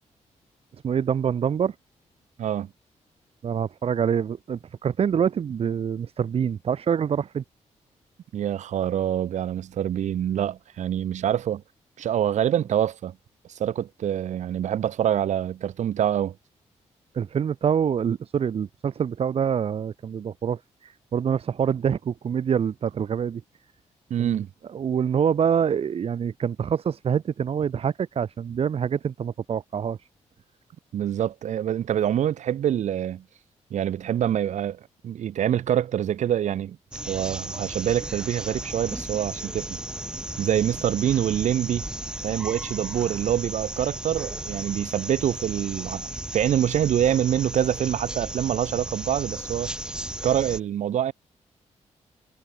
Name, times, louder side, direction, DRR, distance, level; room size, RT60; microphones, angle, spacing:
voice 1, 0.8-1.7 3.4-7.4 17.1-20.6 21.1-23.4 24.2-24.4 24.7-30.0, right 7 dB, 55° right, 5.9 m, -25 dB
voice 2, 2.4-2.7 8.3-11.6 12.0-13.1 13.6-16.4 24.1-24.5 30.9-33.2 33.7-36.8 37.1-39.8 40.4-41.8 42.2-49.7 50.2-51.1, right 10 dB, 75° right, 7.8 m, -25 dB
sound 1, 36.9-50.6, right 1 dB, 5° right, 7.8 m, -35 dB
wide cardioid pair, 140°, 12 cm